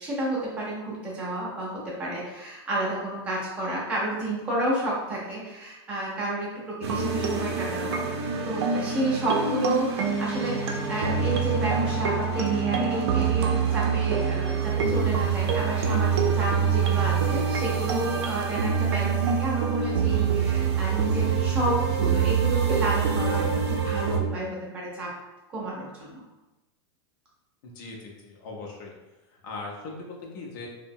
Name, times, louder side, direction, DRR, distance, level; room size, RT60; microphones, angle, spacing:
voice 1, 0.0-8.0 8.4-25.1 25.5-26.2, right 1 dB, 10° right, -6 dB, 0.6 m, -31 dB
sound 1, 6.8-24.2, right 6 dB, 90° right, 0.4 m, -25 dB
voice 2, 27.6-28.9 29.4-30.7, left 3 dB, 45° left, -1 dB, 0.6 m, -39 dB
2.7 x 2.1 x 2.6 m, 1.0 s
supercardioid pair, 170°, 13 cm